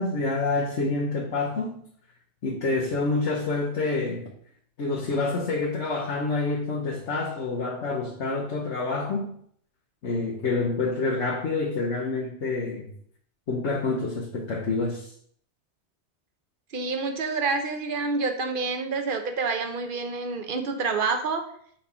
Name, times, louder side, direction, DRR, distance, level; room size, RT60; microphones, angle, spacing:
voice 1, 0.0-1.8 2.4-4.3 4.8-9.3 10.0-12.9 13.5-15.1, left 3 dB, 80° left, -3 dB, 1.3 m, -27 dB
voice 2, 16.7-21.4, right 4 dB, 55° right, 5 dB, 0.9 m, -28 dB
4.4 x 3.9 x 5.5 m, 0.62 s
omnidirectional pair, 1.2 m